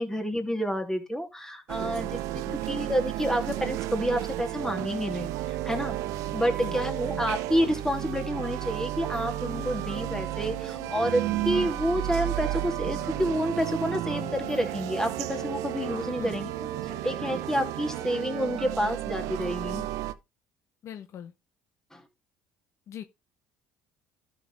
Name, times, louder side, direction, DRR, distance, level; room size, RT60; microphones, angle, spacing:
voice 1, 0.0-6.0 6.3-19.9 21.9-22.1, equal, 10° left, 3.1 m, -29 dB
sound 1, 1.7-20.1, right 15 dB, 75° right, 0.8 m, -32 dB
voice 2, 2.4-2.9 6.6-6.8 7.1-7.2 16.2-16.4 20.8-21.3 22.9-23.0, left 9 dB, 55° left, 1.0 m, -41 dB
sound 2, 9.0-18.4, left 8 dB, 80° left, 3.2 m, -47 dB
12.5 x 6.6 x 3.5 m
supercardioid pair, 80°, 6 cm